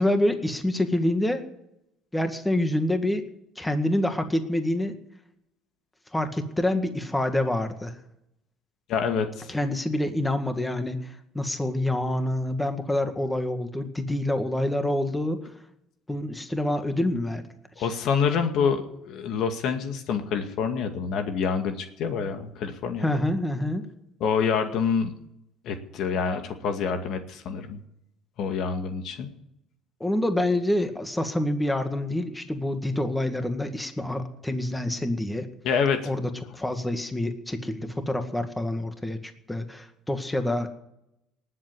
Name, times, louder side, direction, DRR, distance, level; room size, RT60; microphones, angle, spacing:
voice 1, 0.0-1.4 2.1-3.2 3.6-4.9 6.1-7.9 9.5-15.5 16.1-17.4 17.8-17.9 23.0-23.8 30.0-35.5 36.1-40.7, left 1 dB, 10° left, 7 dB, 2.0 m, -27 dB
voice 2, 8.9-9.5 17.8-23.2 24.2-25.1 25.6-27.8 28.4-29.3 35.6-36.1, left 6 dB, 65° left, 6 dB, 2.1 m, -27 dB
19.5 x 7.8 x 9.6 m, 0.82 s
supercardioid pair, 90°, 0 cm